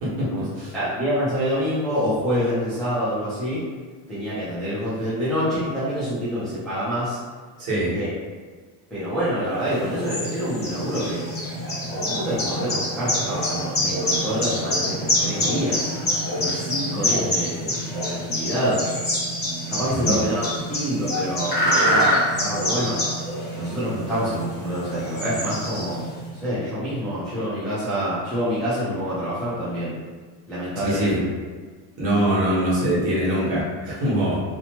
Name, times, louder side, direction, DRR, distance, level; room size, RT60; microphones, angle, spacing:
voice 1, 0.7-3.6 4.1-7.2 7.9-8.1 8.9-11.4 11.9-15.9 16.4-18.8 19.7-23.0 23.6-29.9 30.5-31.2, equal, ahead, -13 dB, 0.3 m, -27 dB
voice 2, 7.6-7.9 19.9-20.0 30.7-31.2 32.0-34.4, right 1 dB, 45° right, -8 dB, 1.2 m, -23 dB
sound 1, 9.6-26.2, left 1 dB, 25° left, 0.9 m, -26 dB
2.8 x 2.1 x 2.8 m, 1.5 s
cardioid pair, 165°, 43 cm